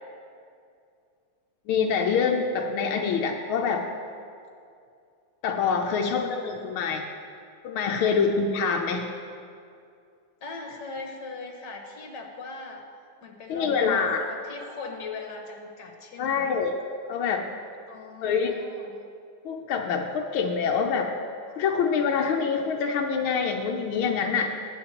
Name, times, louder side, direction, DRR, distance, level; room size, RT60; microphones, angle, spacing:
voice 1, 1.7-3.9 5.4-7.0 7.6-9.1 13.5-14.2 16.2-16.8 17.1-17.4 18.2-18.6 19.4-21.1 21.6-24.5, left 6 dB, 85° left, 2 dB, 1.6 m, -25 dB
voice 2, 6.0-6.8 8.1-8.2 10.4-12.8 13.2-16.5 17.9-19.0, left 3 dB, 60° left, 2 dB, 1.9 m, -40 dB
20.5 x 8.8 x 2.9 m, 2.4 s
omnidirectional pair, 2.2 m